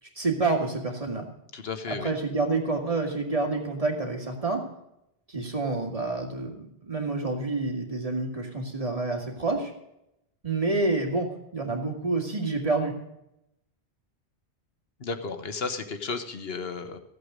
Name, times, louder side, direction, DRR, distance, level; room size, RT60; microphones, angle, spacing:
voice 1, 0.2-1.3 1.9-4.6 5.3-9.7 10.4-12.9, right 3 dB, 30° right, 1 dB, 2.5 m, -28 dB
voice 2, 1.5-2.1 15.0-17.0, left 4 dB, 65° left, 8 dB, 1.3 m, -33 dB
15.5 x 8.1 x 5.1 m, 0.83 s
omnidirectional pair, 1.1 m